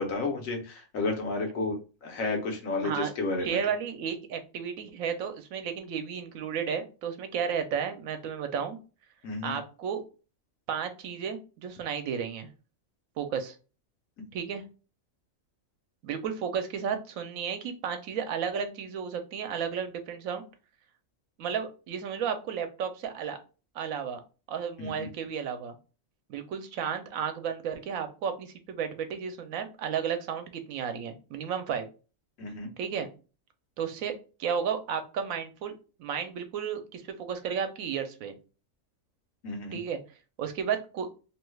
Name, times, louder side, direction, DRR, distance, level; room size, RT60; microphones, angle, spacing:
voice 1, 0.0-3.6 9.2-9.6 24.8-25.1 32.4-32.7 39.4-39.8, left 3 dB, 80° left, 3 dB, 1.2 m, -32 dB
voice 2, 3.4-8.8 9.4-10.0 10.7-12.5 13.2-13.6 14.3-14.6 16.0-20.4 21.4-23.4 23.7-24.2 24.5-25.8 26.3-31.9 32.8-33.1 33.8-34.1 34.4-35.7 36.0-38.4 39.7-40.0 40.4-41.1, right 7 dB, 85° right, 8 dB, 1.0 m, -33 dB
3.0 x 2.2 x 3.1 m, 0.33 s
omnidirectional pair, 1.4 m